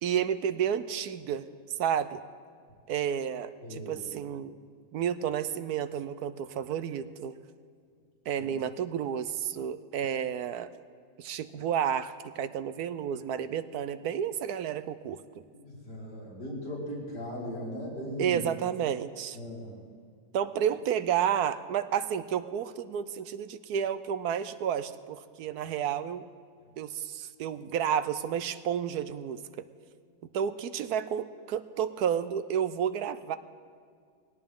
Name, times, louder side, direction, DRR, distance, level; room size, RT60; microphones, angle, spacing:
voice 1, 0.0-1.5 1.8-2.2 2.9-4.5 4.9-7.3 8.3-10.7 11.2-15.2 18.2-19.4 20.3-26.2 26.8-29.7 30.3-33.4, right 9 dB, 75° right, 12 dB, 1.1 m, -31 dB
voice 2, 3.6-4.0 8.4-8.5 15.6-18.4 19.3-19.8, equal, 85° left, -6 dB, 5.4 m, -38 dB
20.5 x 17.5 x 3.7 m, 2.1 s
omnidirectional pair, 1.8 m